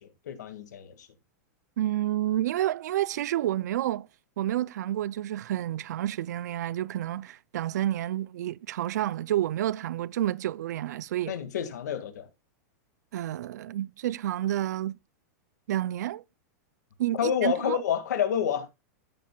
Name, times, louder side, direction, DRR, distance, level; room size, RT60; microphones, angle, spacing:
voice 1, 0.0-1.1 11.3-12.3 17.2-18.8, left 9 dB, 85° left, 1.9 m, -29 dB
voice 2, 1.8-4.1 4.4-11.3 13.1-15.0 15.7-16.2 17.0-17.8, right 13 dB, 80° right, 0.4 m, -29 dB
15.0 x 7.3 x 2.3 m
supercardioid pair, 150°, 9 cm